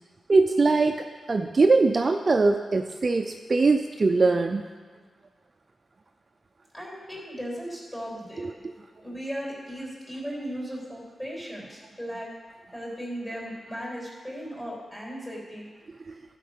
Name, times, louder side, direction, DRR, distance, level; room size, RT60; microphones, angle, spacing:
voice 1, 0.3-4.6 8.4-8.5 16.1-16.2, right 3 dB, 35° right, 5 dB, 0.4 m, -22 dB
voice 2, 6.7-8.5 9.0-12.3 12.7-15.7, equal, 15° left, -4 dB, 3.5 m, -36 dB
14.5 x 5.2 x 6.5 m, 1.5 s
wide cardioid pair, 150°, 0 cm